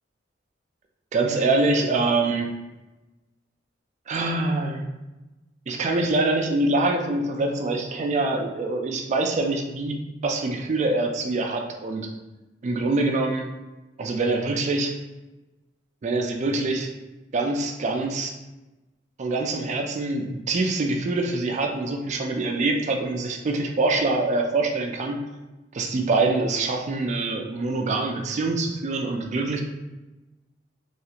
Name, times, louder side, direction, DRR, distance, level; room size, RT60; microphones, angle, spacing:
voice 1, 1.1-2.5 4.1-4.8 5.7-10.0 10.2-12.1 12.6-13.5 14.0-15.0 16.0-16.9 17.3-18.3 19.2-25.2 25.7-29.6, right 2 dB, 40° right, 2 dB, 0.3 m, -24 dB
2.4 x 2.4 x 2.8 m, 1.1 s
head